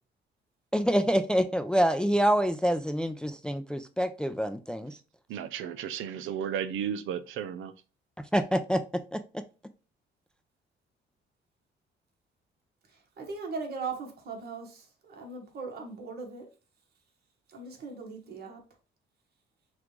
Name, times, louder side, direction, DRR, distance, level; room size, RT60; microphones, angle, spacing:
voice 1, 0.7-5.0 8.3-8.8 9.1-9.4, equal, 5° left, 9 dB, 0.4 m, -26 dB
voice 2, 5.3-7.7, right 8 dB, 85° right, 13 dB, 0.6 m, -34 dB
voice 3, 12.9-16.5 17.5-18.6, right 4 dB, 55° right, 1 dB, 1.4 m, -39 dB
6.0 x 2.4 x 3.2 m, 0.34 s
cardioid pair, 90°, 20 cm